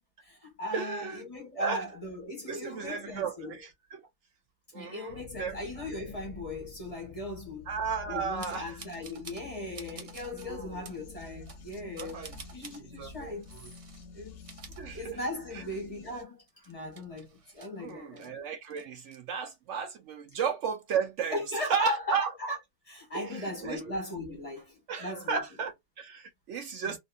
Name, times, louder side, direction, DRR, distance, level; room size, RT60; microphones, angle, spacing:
voice 1, 0.2-3.6 4.7-7.7 8.1-13.5 14.1-14.4 14.9-18.3 21.3-22.6 22.9-25.4 26.8-27.0, left 1 dB, 25° left, 1.3 m, -38 dB
voice 2, 0.7-1.2 1.5-1.8 2.5-4.0 4.7-5.6 7.7-8.8 10.4-10.9 12.0-12.3 13.0-13.3 14.8-15.2 15.5-15.6 17.8-21.4 21.7-22.3 23.1-23.8 24.9-27.0, right 6 dB, 70° right, 0.8 m, -34 dB
sound 1, 5.1-16.2, left 4 dB, 65° left, 0.9 m, -49 dB
sound 2, 8.4-9.5 9.7-10.5 10.8-11.0 11.5-12.8 13.4-14.0 14.3-15.5 15.9-16.0 16.4-18.3 18.6-19.2, right 5 dB, 50° right, 0.4 m, -49 dB
2.8 x 2.7 x 2.3 m
omnidirectional pair, 1.4 m